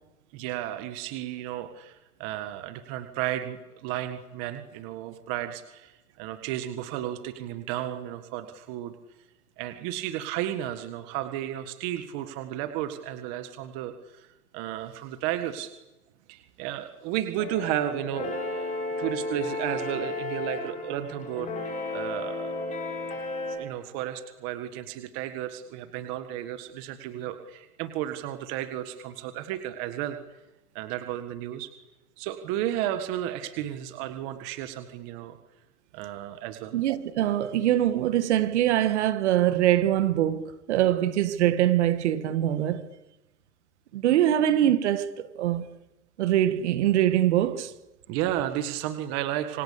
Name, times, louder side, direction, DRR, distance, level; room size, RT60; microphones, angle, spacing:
voice 1, 0.3-8.9 9.6-14.3 14.5-15.7 16.3-18.7 19.0-22.6 23.6-30.2 30.8-31.7 32.2-35.4 35.9-36.8 48.1-49.6, right 12 dB, 25° right, 1.6 m, -33 dB
sound 1, 17.4-23.6, left 2 dB, 15° left, 7.1 m, -33 dB
voice 2, 36.7-42.8 43.9-45.7 46.2-47.7, right 12 dB, 50° right, 2.0 m, -23 dB
27.0 x 25.0 x 8.5 m
hypercardioid pair, 165°, 45 cm